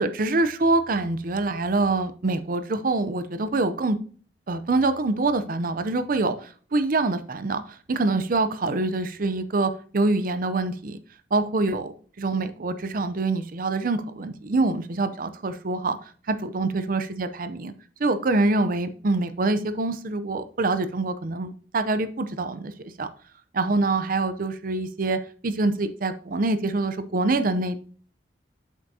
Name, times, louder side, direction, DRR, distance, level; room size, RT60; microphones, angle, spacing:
voice 1, 0.0-4.0 4.5-7.6 7.9-11.0 11.3-11.9 12.2-16.0 16.3-17.7 18.0-22.7 23.0-23.1 23.5-25.2 25.4-27.8, right 2 dB, 50° right, 11 dB, 0.6 m, -25 dB
8.1 x 7.2 x 2.7 m, 0.42 s
head